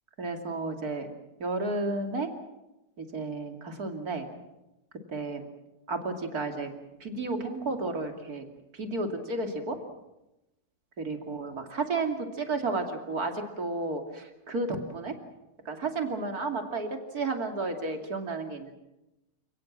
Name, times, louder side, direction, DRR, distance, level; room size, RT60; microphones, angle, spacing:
voice 1, 0.2-1.1 1.4-2.3 3.0-4.3 5.1-5.4 5.9-6.7 7.0-8.5 8.7-9.8 11.0-15.1 15.6-18.7, right 3 dB, 60° right, 4 dB, 3.1 m, -32 dB
29.0 x 18.0 x 7.5 m, 0.95 s
omnidirectional pair, 1.9 m